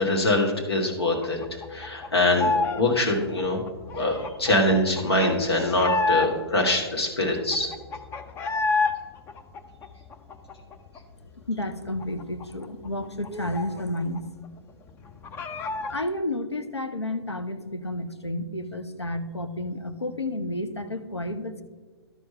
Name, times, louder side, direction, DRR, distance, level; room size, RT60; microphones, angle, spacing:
voice 1, 0.0-1.4 1.7-3.6 3.9-7.7, left 1 dB, 70° left, 0 dB, 1.8 m, -23 dB
sound 1, 1.2-2.8 3.1-6.6 7.0-7.1 7.3-8.9 9.3-11.0 11.3-11.4 11.7-14.2 14.4-14.5 14.9-16.0, left 3 dB, 15° left, 0.5 m, -29 dB
voice 2, 11.5-14.2 15.9-21.6, left 1 dB, 90° left, 8 dB, 0.9 m, -31 dB
12.5 x 4.8 x 5.5 m, 1.4 s
figure-of-eight pair, 115°, 14 cm